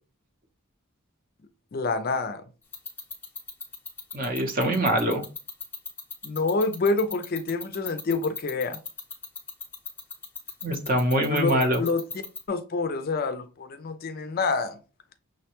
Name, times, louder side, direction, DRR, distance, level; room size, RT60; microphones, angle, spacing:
voice 1, 1.7-2.4 6.2-8.8 11.3-12.1 12.5-14.8, left 3 dB, 45° left, 0.4 m, -27 dB
sound 1, 2.7-12.4, left 5 dB, 10° left, 0.8 m, -35 dB
voice 2, 4.1-5.2 10.6-11.8, right 1 dB, 40° right, 0.7 m, -24 dB
6.2 x 2.2 x 2.9 m
head